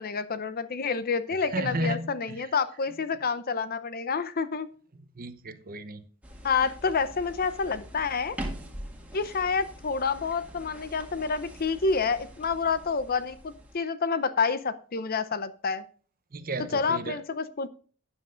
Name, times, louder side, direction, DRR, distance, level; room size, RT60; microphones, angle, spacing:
voice 1, 0.0-4.7 6.4-8.4 9.1-15.8 16.7-17.7, left 5 dB, 40° left, 0.6 m, -28 dB
voice 2, 1.5-2.5 5.2-6.0 16.3-17.2, right 2 dB, 40° right, 0.8 m, -33 dB
sound 1, 6.2-13.8, right 1 dB, 5° right, 2.0 m, -43 dB
13.0 x 9.8 x 2.5 m
head